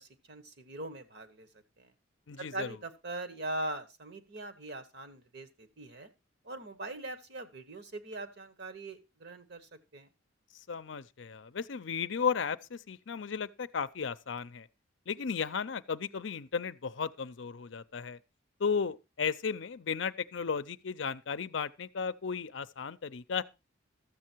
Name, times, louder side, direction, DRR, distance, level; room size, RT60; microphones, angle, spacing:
voice 1, 0.0-1.5 1.8-1.9 2.4-6.1 6.4-10.1, right 2 dB, 55° right, 1.3 m, -41 dB
voice 2, 2.3-2.7 10.7-14.7 15.1-18.2 18.6-23.4, left 6 dB, 65° left, 0.5 m, -34 dB
13.0 x 7.6 x 4.5 m
head